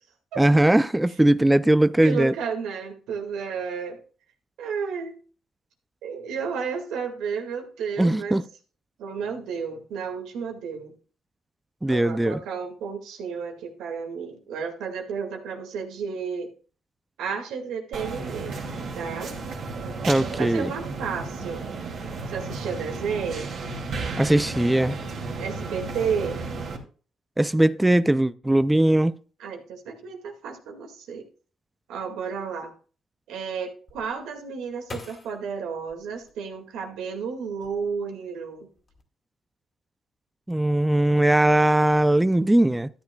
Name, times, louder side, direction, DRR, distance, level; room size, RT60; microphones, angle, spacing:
voice 1, 0.4-2.3 8.0-8.4 11.8-12.4 20.1-20.7 24.2-25.0 27.4-29.1 40.5-42.9, right 1 dB, 10° right, 0.4 m, -20 dB
voice 2, 2.0-4.0 4.6-5.2 6.0-8.4 9.0-10.9 11.9-16.5 17.2-18.6 18.9-19.3 20.4-21.6 22.3-23.5 25.4-26.4 29.4-31.3 31.9-32.7 33.3-38.7, right 6 dB, 85° right, 2.0 m, -32 dB
sound 1, 17.9-26.8, right 3 dB, 65° right, 2.5 m, -33 dB
sound 2, 33.9-37.0 37.5-38.2 38.6-39.0, left 3 dB, 35° left, 2.0 m, -45 dB
13.0 x 9.7 x 2.3 m
cardioid pair, 90°, 0 cm